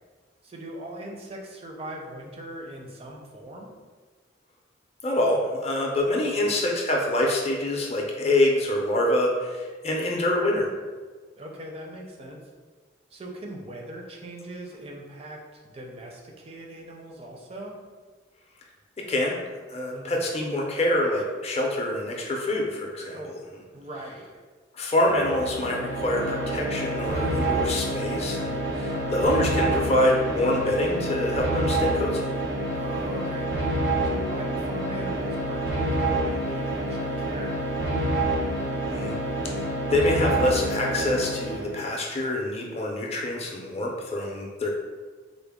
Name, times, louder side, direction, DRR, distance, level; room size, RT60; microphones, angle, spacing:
voice 1, 0.4-3.7 6.2-6.4 11.4-12.4 13.1-17.8 19.9-20.2 23.1-23.3 23.7-24.4 28.9-29.1 32.7-33.5 34.0-38.3, right 1 dB, 30° right, 0 dB, 0.4 m, -40 dB
voice 2, 5.0-10.7 19.0-19.4 19.7-23.2 24.7-32.3 38.9-39.2 39.4-44.7, left 1 dB, 30° left, -1 dB, 0.5 m, -26 dB
sound 1, 25.0-41.9, right 1 dB, 75° right, 0.7 m, -28 dB
3.7 x 2.0 x 3.5 m, 1.4 s
head